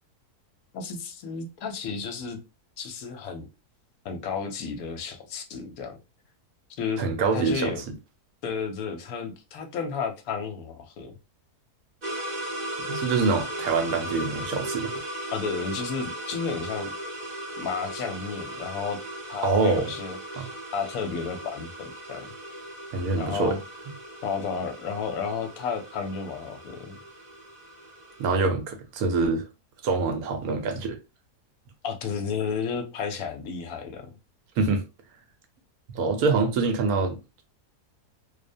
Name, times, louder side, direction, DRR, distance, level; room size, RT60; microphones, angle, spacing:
voice 1, 0.7-2.4 2.8-3.5 4.0-6.0 6.8-7.0 7.3-7.8 8.4-11.2 15.3-16.9 17.6-19.0 19.3-22.3 23.2-23.6 24.2-27.0 31.8-34.1, left 5 dB, 70° left, 1.0 m, -32 dB
voice 2, 7.0-7.8 12.9-14.9 19.4-19.9 20.4-20.5 22.9-23.6 28.2-29.5 29.8-31.0 34.6-34.8 35.9-37.4, right 4 dB, 75° right, 1.0 m, -25 dB
sound 1, 12.0-28.4, right 1 dB, 50° right, 0.5 m, -37 dB
2.5 x 2.1 x 2.5 m
omnidirectional pair, 1.7 m